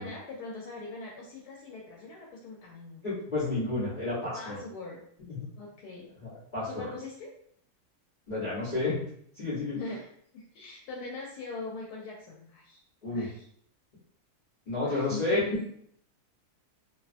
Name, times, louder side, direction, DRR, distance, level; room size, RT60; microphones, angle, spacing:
voice 1, 0.0-3.0 3.4-3.6 4.3-5.0 5.6-6.1 6.7-7.3 9.7-10.0 10.3-12.8 13.1-13.4 14.8-15.7, left 3 dB, 90° left, -2 dB, 1.1 m, -41 dB
voice 2, 3.0-4.6 5.3-5.5 6.2-6.9 8.3-9.0 9.3-9.8 13.0-13.3 14.7-15.4, left 2 dB, 35° left, -11 dB, 0.9 m, -31 dB
2.7 x 2.3 x 2.4 m, 0.67 s
omnidirectional pair, 1.7 m